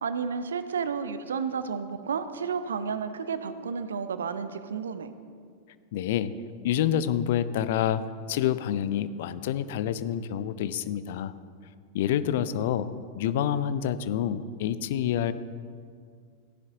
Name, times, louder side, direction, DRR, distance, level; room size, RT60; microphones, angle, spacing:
voice 1, 0.0-5.1, right 6 dB, 65° right, 12 dB, 0.6 m, -31 dB
voice 2, 5.9-6.3 6.6-8.0 8.3-11.3 11.9-12.9 13.2-15.3, left 10 dB, 55° left, 14 dB, 0.5 m, -27 dB
15.0 x 10.5 x 3.7 m, 2.1 s
figure-of-eight pair, 90°, 0 cm